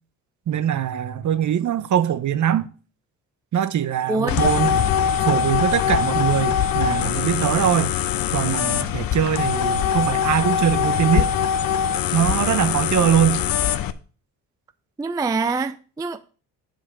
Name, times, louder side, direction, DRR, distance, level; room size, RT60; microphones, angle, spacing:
voice 1, 0.5-2.7 3.5-4.8 5.2-7.9 8.3-11.3 12.1-13.4, right 9 dB, 45° right, 0.8 m, -22 dB
voice 2, 4.1-4.5 15.0-16.3, right 3 dB, 10° right, 0.3 m, -25 dB
sound 1, 4.3-13.9, left 9 dB, 55° left, 0.7 m, -22 dB
7.6 x 5.2 x 5.6 m
hypercardioid pair, 55°, 43 cm